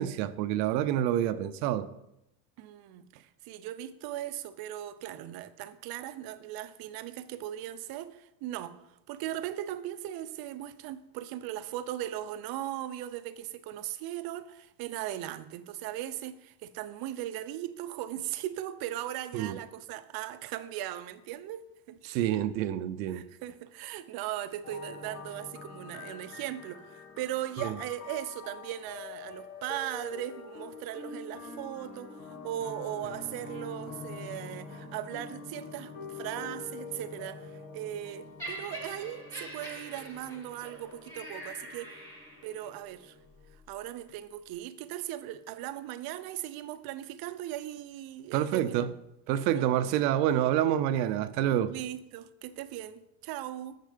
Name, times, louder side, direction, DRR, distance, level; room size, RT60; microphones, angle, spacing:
voice 1, 0.0-1.9 19.3-19.6 22.0-23.2 27.6-27.7 48.3-48.9 49.3-51.7, right 11 dB, 85° right, 0.7 m, -27 dB
voice 2, 2.6-8.8 9.1-22.0 23.1-41.9 42.4-43.1 43.7-49.0 49.5-49.7 51.7-53.8, right 13 dB, 45° right, 0.7 m, -38 dB
sound 1, 24.6-43.5, left 4 dB, 70° left, 2.0 m, -45 dB
Laughter, 38.4-42.6 43.4-43.6, right 1 dB, 5° left, 2.3 m, -44 dB
6.7 x 6.5 x 5.1 m
supercardioid pair, 125°, 50 cm